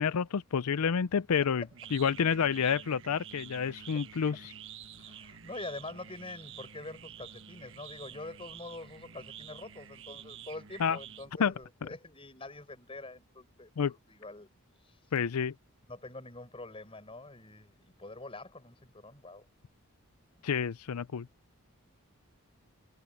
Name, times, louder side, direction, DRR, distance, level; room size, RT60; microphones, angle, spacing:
voice 1, 0.0-1.6 1.9-4.5 10.8-11.0 11.4-11.5 11.8-11.9 13.8-13.9 15.1-15.5 20.4-21.3, left 7 dB, 85° left, 0.5 m, -29 dB
sound 1, 1.3-11.7, right 8 dB, 60° right, 1.3 m, -49 dB
voice 2, 5.0-14.5 14.8-15.0 15.9-19.5, left 2 dB, 25° left, 6.1 m, -45 dB
head